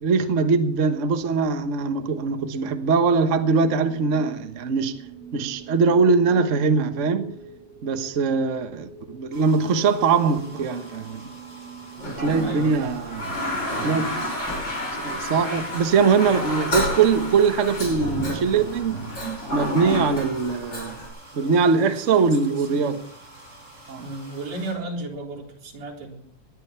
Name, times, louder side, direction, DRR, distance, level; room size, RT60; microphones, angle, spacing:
voice 1, 0.0-5.0 5.3-7.3 7.8-11.2 12.1-13.4 13.8-14.2 15.0-19.0 19.5-21.0 21.4-23.0 23.9-24.1, right 5 dB, 80° right, 0.6 m, -22 dB
sound 1, 1.5-12.9, right 5 dB, 5° left, 4.3 m, -45 dB
sound 2, 9.3-24.8, right 1 dB, 25° right, 5.2 m, -47 dB
Toilet flush, 12.0-21.1, left 1 dB, 35° left, 6.6 m, -30 dB
voice 2, 12.4-13.0 14.4-14.6 15.2-15.6 21.3-22.0 22.6-22.7 24.0-26.2, right 2 dB, 60° right, 4.9 m, -35 dB
19.5 x 12.0 x 5.7 m
omnidirectional pair, 3.4 m